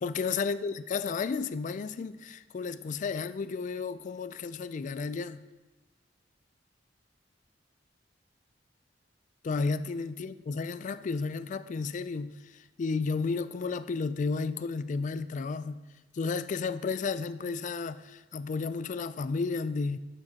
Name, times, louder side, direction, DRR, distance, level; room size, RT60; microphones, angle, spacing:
voice 1, 0.0-5.4 9.4-15.8 16.1-20.0, left 4 dB, 45° left, 0.3 m, -32 dB
13.5 x 10.5 x 2.8 m
head